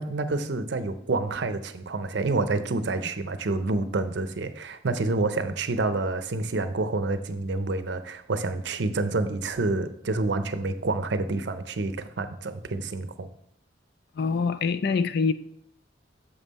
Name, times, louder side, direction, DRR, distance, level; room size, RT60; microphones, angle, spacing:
voice 1, 0.0-13.3, right 3 dB, 65° right, 0.6 m, -28 dB
voice 2, 14.2-15.3, left 5 dB, 55° left, 0.4 m, -24 dB
6.9 x 5.4 x 4.0 m
head